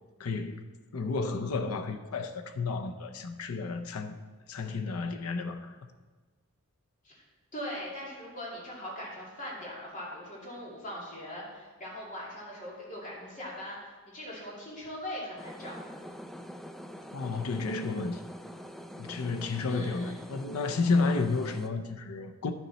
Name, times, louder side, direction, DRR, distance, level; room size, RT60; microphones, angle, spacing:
voice 1, 0.2-0.6 0.9-4.2 4.5-5.8 17.1-18.2 19.0-22.5, left 4 dB, 80° left, 0.6 m, -31 dB
voice 2, 7.5-15.8 19.6-20.2, equal, 35° left, 2.5 m, -41 dB
sound 1, 15.4-21.7, equal, ahead, 0.3 m, -45 dB
11.0 x 7.1 x 4.1 m
head